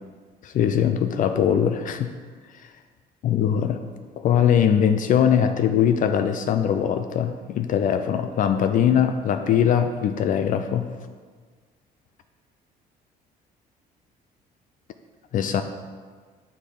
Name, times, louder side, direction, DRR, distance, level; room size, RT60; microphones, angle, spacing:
voice 1, 0.4-2.1 3.2-3.8 4.2-10.9 15.3-15.6, left 8 dB, 50° left, 7 dB, 0.4 m, -21 dB
6.6 x 3.2 x 5.4 m, 1.6 s
cardioid pair, 110°, 17 cm